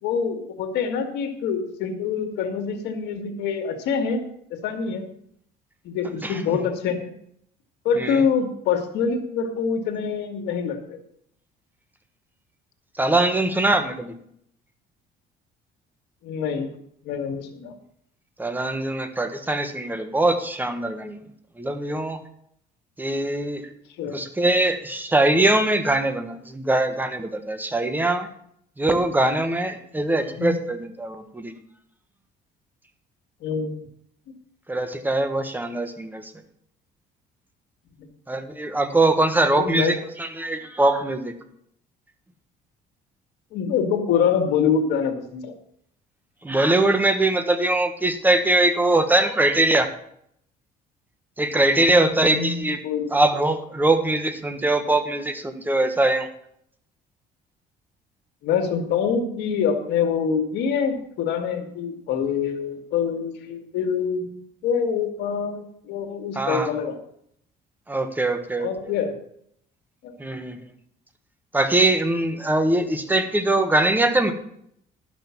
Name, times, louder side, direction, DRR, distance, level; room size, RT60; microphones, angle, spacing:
voice 1, 0.0-4.2 4.5-5.1 5.8-7.1 7.9-11.0 16.2-16.7 17.0-17.7 24.0-24.2 30.4-30.6 33.4-33.8 34.3-34.4 39.5-39.9 43.5-45.5 52.0-53.1 58.4-64.4 64.6-67.0 68.6-69.2 70.0-70.2, left 6 dB, 85° left, 5 dB, 1.8 m, -25 dB
voice 2, 6.2-6.6 8.0-8.2 13.0-14.1 18.4-21.2 21.6-22.2 23.0-23.7 24.1-28.3 28.8-31.5 34.7-36.3 38.3-41.3 46.4-49.9 51.4-52.8 53.1-56.3 66.3-66.7 67.9-68.9 70.2-70.6 71.5-74.3, right 2 dB, 10° right, 8 dB, 1.4 m, -22 dB
11.5 x 6.1 x 7.1 m, 0.70 s
cardioid pair, 110°, 17 cm